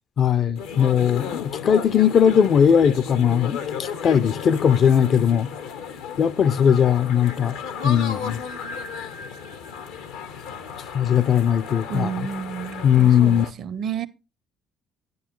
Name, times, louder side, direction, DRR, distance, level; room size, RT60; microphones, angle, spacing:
voice 1, 0.2-5.5 6.2-7.6 7.8-8.4 10.9-12.1 12.8-13.5, left 8 dB, 50° left, 0.5 m, -19 dB
sound 1, 0.5-13.5, left 6 dB, 75° left, 0.8 m, -34 dB
voice 2, 11.9-14.1, right 7 dB, 55° right, 0.6 m, -31 dB
9.9 x 9.4 x 3.0 m
hypercardioid pair, 50°, 0 cm